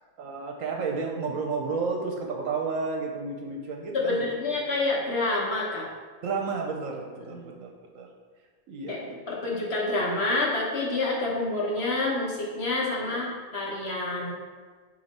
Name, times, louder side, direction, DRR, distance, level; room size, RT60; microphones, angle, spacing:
voice 1, 0.2-4.3 6.2-8.1 8.7-9.5 11.3-11.4 12.9-13.3, right 4 dB, 65° right, 1 dB, 1.0 m, -32 dB
voice 2, 3.9-5.9 7.3-7.5 8.9-9.0 9.3-13.3 13.5-14.4, left 2 dB, 50° left, -3 dB, 1.1 m, -28 dB
7.7 x 2.9 x 4.1 m, 1.5 s
omnidirectional pair, 1.6 m